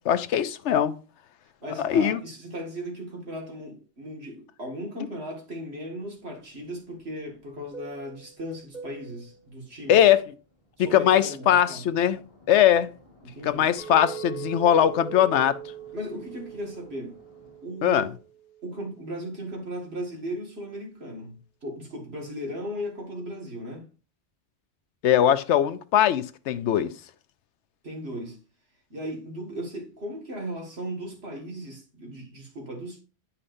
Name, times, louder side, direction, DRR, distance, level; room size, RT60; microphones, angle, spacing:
voice 1, 0.0-1.0 1.8-2.2 9.9-10.2 10.8-12.2 12.5-12.9 13.4-15.6 17.8-18.1 25.0-26.9, left 10 dB, 85° left, 0.9 m, -21 dB
voice 2, 1.6-10.0 10.8-11.8 13.2-13.7 15.9-17.2 17.6-18.1 18.6-21.4 21.6-23.9 27.8-28.4 28.9-33.0, equal, 65° right, 2.3 m, -37 dB
Fixed-wing aircraft airplane, 6.1-11.5 11.8-17.7, right 3 dB, 30° left, 2.0 m, -48 dB
Chink clink, 13.8-19.0, right 10 dB, 10° right, 3.6 m, -41 dB
9.8 x 5.6 x 2.6 m
omnidirectional pair, 1.2 m